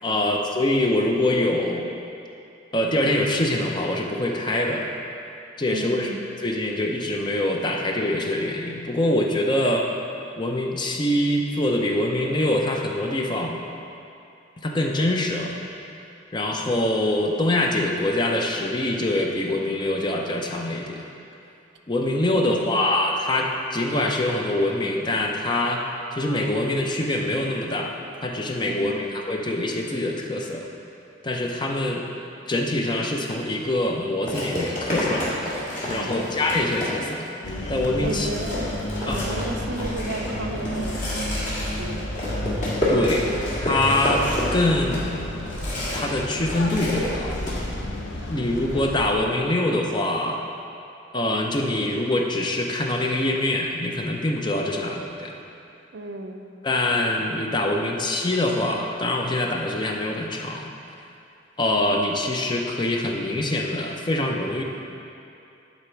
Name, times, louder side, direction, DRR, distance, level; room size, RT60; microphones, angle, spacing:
voice 1, 0.0-1.9 2.7-4.9 5.6-6.1 6.4-9.9 10.4-13.6 14.6-15.6 16.3-21.1 21.9-25.8 26.1-30.7 31.2-32.0 32.5-35.5 35.9-37.3 37.7-38.3 39.1-39.2 42.9-43.3 43.6-45.4 45.9-47.4 48.3-50.4 51.1-55.3 56.6-60.7 61.6-64.6, left 1 dB, 25° left, 1 dB, 0.5 m, -24 dB
voice 2, 5.7-6.2 22.3-22.8 28.6-29.0 35.9-36.4 38.0-38.8 39.0-41.5 41.8-42.3 55.9-56.5, right 2 dB, 65° right, 5 dB, 0.5 m, -34 dB
sound 1, 33.3-33.5 34.3-37.3 37.7-37.8 38.1-46.2 46.5-47.6, left 1 dB, 40° left, 1.9 m, -29 dB
sound 2, 37.4-49.1, left 1 dB, 85° left, 0.7 m, -31 dB
10.0 x 4.0 x 4.5 m, 2.7 s
head